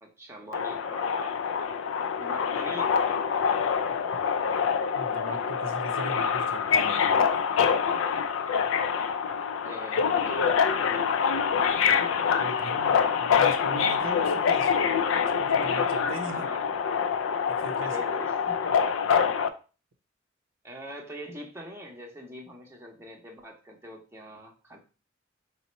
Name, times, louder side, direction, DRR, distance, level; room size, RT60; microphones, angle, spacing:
voice 1, 0.0-2.9 9.6-11.1 11.5-13.2 16.3-16.6 17.8-18.7 20.6-24.8, equal, 15° right, 0 dB, 0.7 m, -43 dB
Subway metro underground, 0.5-19.5, left 6 dB, 90° left, 0.4 m, -25 dB
voice 2, 4.9-7.2 12.4-14.7 15.4-16.5 17.6-18.0, right 2 dB, 85° right, 7 dB, 0.6 m, -39 dB
4.0 x 2.0 x 4.1 m, 0.34 s
head